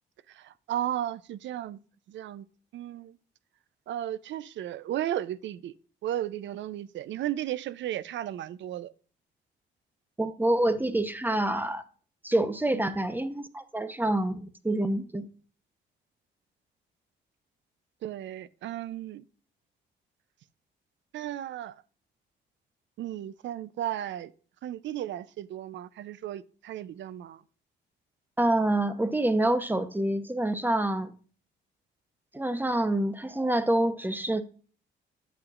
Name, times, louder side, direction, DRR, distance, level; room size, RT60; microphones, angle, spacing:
voice 1, 0.3-1.8 2.1-2.5 2.7-3.2 3.9-5.7 6.0-8.9 12.7-12.9 18.0-19.2 21.1-21.7 23.0-24.3 24.6-27.4, right 12 dB, 70° right, 0.5 m, -34 dB
voice 2, 10.2-11.8 12.2-15.2 28.4-31.1 32.3-34.4, right 1 dB, 10° right, 0.8 m, -27 dB
8.8 x 8.1 x 2.4 m
cardioid pair, 90°, 20 cm